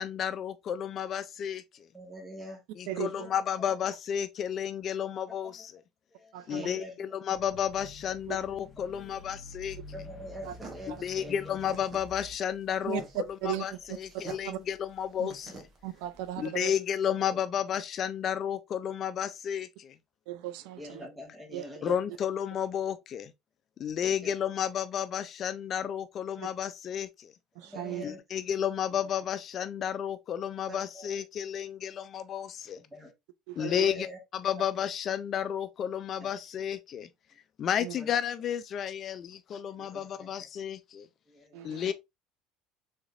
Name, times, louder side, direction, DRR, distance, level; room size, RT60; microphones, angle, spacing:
voice 1, 0.0-1.9 2.8-5.8 6.5-9.8 10.9-15.7 16.4-20.0 21.8-23.3 23.8-27.3 28.0-32.8 33.6-34.1 34.3-37.1 37.6-41.1 41.6-41.9, left 9 dB, 45° left, 0.3 m, -32 dB
voice 2, 1.9-2.6 3.0-3.3 6.1-6.9 9.9-11.5 20.8-22.0 24.2-24.3 27.6-28.2 30.7-31.1 32.9-33.1 33.6-34.2 38.0-38.1 39.8-40.3 41.3-41.9, equal, 10° right, 1.3 m, -44 dB
voice 3, 2.9-3.3 6.3-6.7 8.3-8.4 10.4-10.5 10.9-11.0 12.9-13.0 13.4-13.6 14.5-14.6 15.2-15.3 15.8-16.7 20.3-21.1 21.5-21.6 27.6-28.0 33.5-33.9 37.8-37.9 41.5-41.8, right 13 dB, 80° right, 0.3 m, -36 dB
sound 1, 7.3-12.4, left 3 dB, 15° left, 0.9 m, -48 dB
sound 2, 10.4-16.5, right 5 dB, 40° right, 1.2 m, -49 dB
3.6 x 3.2 x 2.4 m
supercardioid pair, 110°, 0 cm